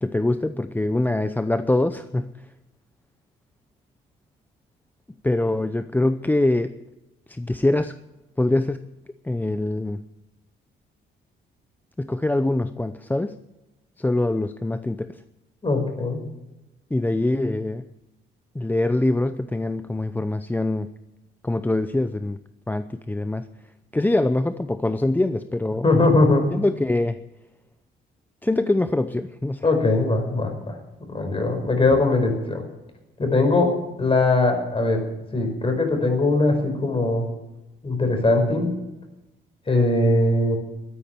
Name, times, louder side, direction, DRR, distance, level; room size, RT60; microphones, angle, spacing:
voice 1, 0.0-2.5 5.2-6.8 7.3-8.0 8.4-8.9 9.2-10.0 12.0-13.4 14.0-15.2 16.9-17.8 18.5-20.9 21.4-22.4 22.7-23.5 23.9-25.9 26.5-27.2 28.4-29.7, left 2 dB, 10° left, 11 dB, 0.6 m, -24 dB
voice 2, 15.6-16.2 25.8-26.5 29.6-30.8 31.1-32.6 33.2-33.7 34.0-35.0 35.3-37.3 37.8-38.7 39.7-40.6, left 2 dB, 25° left, 5 dB, 5.0 m, -20 dB
13.0 x 9.8 x 9.1 m, 1.0 s
cardioid pair, 90°, 20 cm